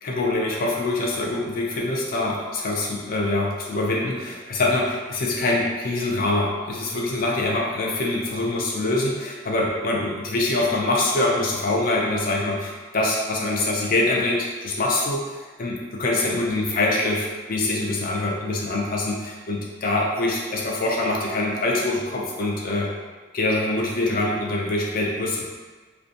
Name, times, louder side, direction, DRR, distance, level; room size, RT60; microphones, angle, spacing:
voice 1, 0.0-22.9 23.3-25.5, left 2 dB, 45° left, -2 dB, 0.4 m, -24 dB
2.5 x 2.2 x 2.6 m, 1.3 s
head